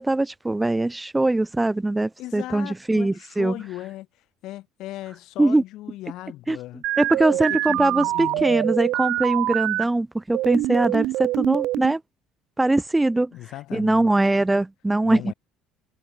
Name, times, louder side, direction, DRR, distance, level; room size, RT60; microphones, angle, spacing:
voice 1, 0.0-3.5 5.4-5.6 6.5-6.6 7.0-12.0 12.6-13.3 13.7-15.3, right 2 dB, 10° right, 0.4 m, -22 dB
voice 2, 2.2-4.1 4.4-6.8 7.3-8.8 13.3-14.1 15.0-15.3, left 16 dB, 65° left, 6.8 m, -37 dB
sound 1, 6.8-9.8 10.3-11.9, right 17 dB, 70° right, 1.2 m, -25 dB
supercardioid pair, 95°, 0 cm